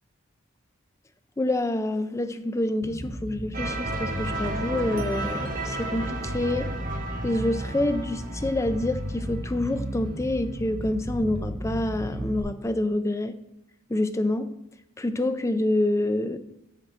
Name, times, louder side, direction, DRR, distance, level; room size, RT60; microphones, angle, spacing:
voice 1, 1.4-6.7 7.2-13.3 13.9-14.5 15.0-16.4, left 1 dB, 15° left, 0.4 m, -27 dB
Bass guitar, 2.8-12.4, equal, 20° right, 0.9 m, -34 dB
sound 1, 3.5-10.3, right 2 dB, 40° right, 1.1 m, -35 dB
10.0 x 6.0 x 3.9 m
head